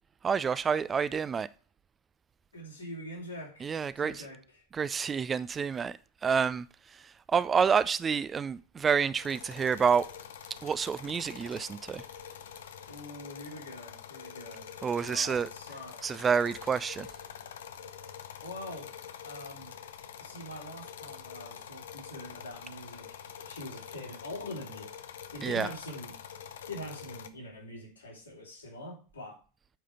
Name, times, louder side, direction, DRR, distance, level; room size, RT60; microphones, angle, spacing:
voice 1, 0.2-1.5 3.6-4.2 4.7-6.0 6.2-6.7 7.3-10.1 10.6-12.0 14.8-15.5 16.0-17.1 25.4-25.7, right 6 dB, 20° right, 0.4 m, -28 dB
voice 2, 2.5-4.7 12.9-14.7 15.0-16.1 18.4-19.0 19.2-19.8 20.2-26.2 26.7-29.4, left 1 dB, 75° left, 3.7 m, -44 dB
sound 1, 9.2-27.3, left 8 dB, 60° left, 0.8 m, -46 dB
9.1 x 5.0 x 6.8 m
figure-of-eight pair, 90°, 0 cm